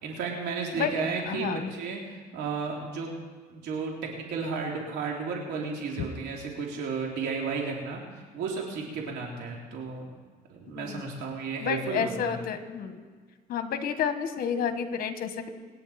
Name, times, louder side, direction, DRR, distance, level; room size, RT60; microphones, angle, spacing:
voice 1, 0.0-3.1 3.5-10.1 10.5-12.3, right 5 dB, 80° right, 0 dB, 3.1 m, -33 dB
voice 2, 1.3-1.7 10.7-11.0 11.6-13.0 13.5-15.5, left 7 dB, 60° left, 8 dB, 1.6 m, -30 dB
25.5 x 9.9 x 4.4 m, 1.5 s
cardioid pair, 110°, 17 cm